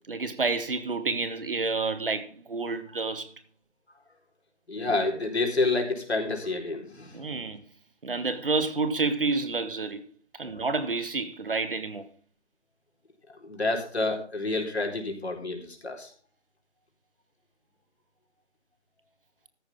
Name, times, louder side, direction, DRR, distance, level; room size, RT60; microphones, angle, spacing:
voice 1, 0.1-3.3 7.1-7.6 8.0-10.0 10.4-12.0, right 3 dB, 50° right, 1.7 m, -29 dB
voice 2, 4.7-7.2 10.5-10.6 13.4-16.1, left 3 dB, 65° left, 4.3 m, -29 dB
14.0 x 10.0 x 3.7 m
figure-of-eight pair, 165°, 35 cm